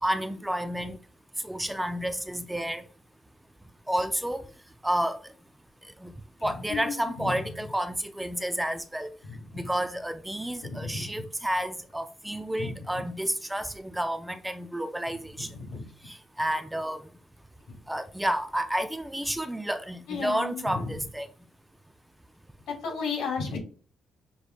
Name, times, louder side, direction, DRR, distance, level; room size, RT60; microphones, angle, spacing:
voice 1, 0.0-1.0 1.4-2.9 3.9-4.5 4.8-5.2 6.0-6.1 6.4-9.1 9.5-15.5 16.1-17.0 17.9-21.3, right 1 dB, 5° right, 0.4 m, -30 dB
voice 2, 6.4-7.4 9.2-9.7 10.7-11.1 12.6-12.7 15.5-15.9 17.7-17.8 20.1-20.9 22.7-23.6, left 5 dB, 80° left, 2.4 m, -34 dB
6.8 x 3.1 x 2.2 m
cardioid pair, 90°, 0 cm